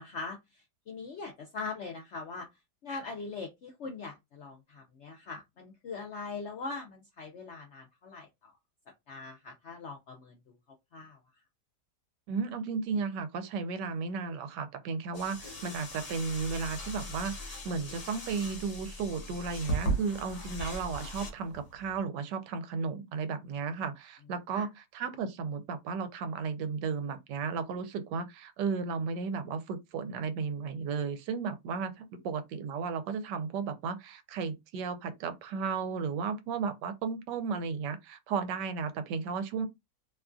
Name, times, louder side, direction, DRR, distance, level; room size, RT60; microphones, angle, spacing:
voice 1, 0.0-2.5 2.8-8.6 9.1-10.5 10.9-11.2 24.5-24.7, left 4 dB, 75° left, 0.6 m, -41 dB
voice 2, 12.3-24.7 24.9-39.7, right 5 dB, 90° right, 1.2 m, -34 dB
sound 1, 15.1-22.0, right 1 dB, 55° left, 1.3 m, -38 dB
2.9 x 2.3 x 2.4 m
omnidirectional pair, 1.8 m